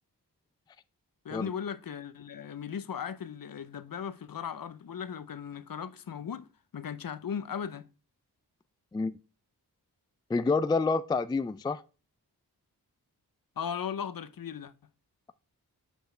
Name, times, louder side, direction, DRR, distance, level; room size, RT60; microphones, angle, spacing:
voice 1, 1.2-7.9 13.6-14.7, left 7 dB, 55° left, 0.7 m, -37 dB
voice 2, 10.3-11.8, left 4 dB, 10° left, 0.3 m, -28 dB
8.0 x 4.6 x 3.3 m
cardioid pair, 45°, 40 cm